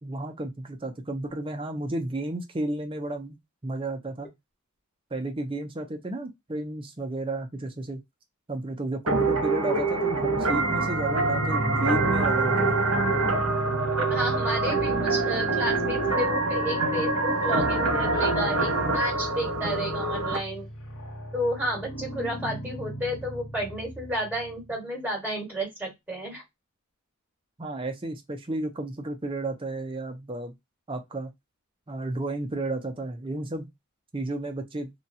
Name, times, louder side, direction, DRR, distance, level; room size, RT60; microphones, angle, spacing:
voice 1, 0.0-3.4 3.6-4.3 5.1-8.0 8.5-12.8 13.3-13.5 27.6-30.5 30.9-31.3 31.9-33.7 34.1-34.9, right 2 dB, 25° right, 0.5 m, -32 dB
sound 1, 9.1-20.4, right 3 dB, 70° right, 1.2 m, -25 dB
sound 2, 10.1-24.7, equal, 60° left, 1.0 m, -36 dB
voice 2, 14.1-20.7 21.3-26.4, equal, 10° right, 1.5 m, -32 dB
2.8 x 2.3 x 2.6 m
head